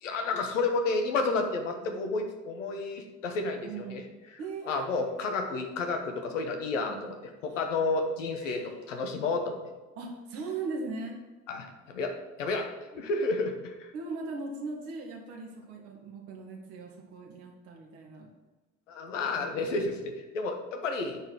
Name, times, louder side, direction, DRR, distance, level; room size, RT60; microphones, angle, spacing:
voice 1, 0.0-4.0 4.6-7.1 7.4-9.6 11.5-12.1 12.4-12.7 13.0-13.9 18.9-21.2, left 3 dB, 80° left, 4 dB, 1.2 m, -31 dB
voice 2, 3.6-4.0 4.4-4.9 6.9-7.1 8.4-9.1 10.0-11.2 12.9-13.1 13.9-18.3 19.4-19.8, right 4 dB, 65° right, -1 dB, 1.9 m, -39 dB
9.2 x 4.5 x 6.2 m, 1.2 s
figure-of-eight pair, 55°, 37 cm